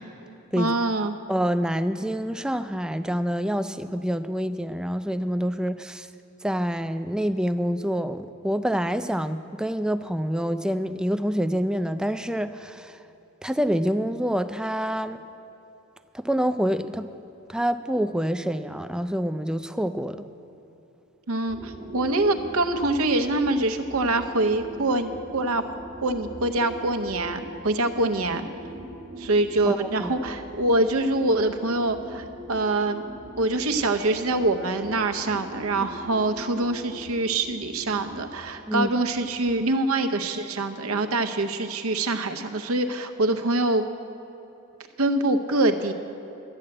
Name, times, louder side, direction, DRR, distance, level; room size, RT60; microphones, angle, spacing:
voice 1, 0.6-1.2 21.3-25.6 26.0-28.5 29.2-33.0 33.4-43.9 45.0-45.9, right 2 dB, 75° right, 7 dB, 0.8 m, -25 dB
voice 2, 1.3-6.1 6.4-13.0 13.4-15.2 16.1-17.1 17.5-20.2 29.7-30.1 38.7-38.9, equal, 5° right, 10 dB, 0.3 m, -27 dB
sound 1, 21.5-39.6, equal, 60° right, 1.3 m, -42 dB
12.5 x 7.7 x 8.7 m, 3.0 s
head